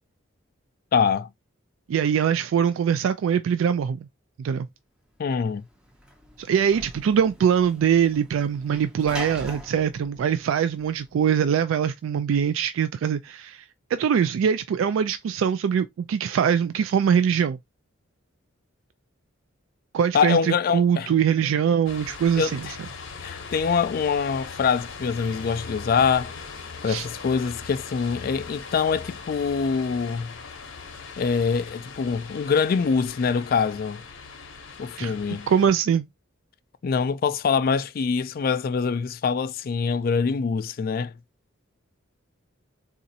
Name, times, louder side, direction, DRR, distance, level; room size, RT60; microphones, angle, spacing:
voice 1, 0.9-1.3 5.2-5.6 20.1-21.1 22.4-22.5 23.2-26.3 26.8-30.3 31.2-34.0 34.8-35.5 36.8-41.1, left 5 dB, 45° left, 0.3 m, -24 dB
voice 2, 1.9-4.1 4.4-4.7 6.4-13.6 13.9-17.6 19.9-22.8 26.8-27.1 35.0-35.1 35.5-36.1, right 8 dB, 85° right, 0.3 m, -23 dB
Sliding door / Slam, 5.4-11.2, left 1 dB, 5° right, 0.6 m, -42 dB
sound 1, 21.9-35.7, left 5 dB, 70° left, 0.7 m, -40 dB
4.0 x 2.4 x 2.7 m
head